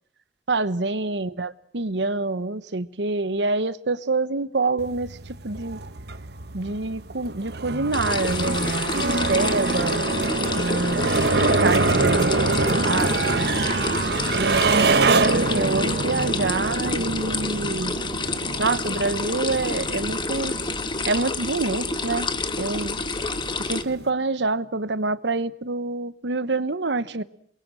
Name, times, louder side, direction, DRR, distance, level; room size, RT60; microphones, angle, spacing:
voice 1, 0.5-5.8 6.5-8.7 8.9-10.0 10.5-11.2 11.6-13.5 14.3-18.0 18.6-20.6 21.1-22.3 22.6-23.0 23.7-27.2, right 3 dB, 80° right, 14 dB, 1.2 m, -26 dB
sound 1, 4.8-24.1, right 3 dB, 65° right, 1.1 m, -25 dB
sound 2, 7.9-23.8, left 3 dB, 25° left, 1.4 m, -29 dB
28.0 x 22.5 x 6.3 m, 0.65 s
head